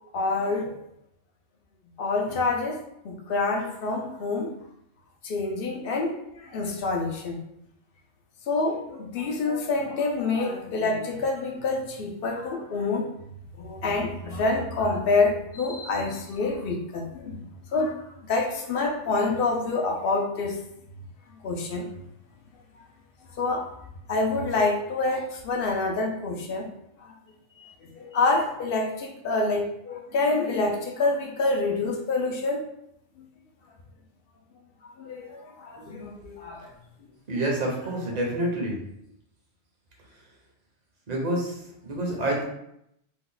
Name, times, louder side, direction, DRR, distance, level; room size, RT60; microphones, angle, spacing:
voice 1, 0.1-0.8 2.0-4.5 5.2-7.4 8.5-13.1 13.6-17.4 17.7-18.0 18.2-20.6 21.4-21.9 23.4-23.7 24.1-26.7 27.0-27.1 27.6-32.7 34.8-36.7, left 3 dB, 60° left, 1 dB, 0.7 m, -27 dB
voice 2, 37.3-38.8 41.1-42.4, right 1 dB, 40° right, -2 dB, 0.8 m, -28 dB
2.8 x 2.3 x 3.7 m, 0.78 s
omnidirectional pair, 1.2 m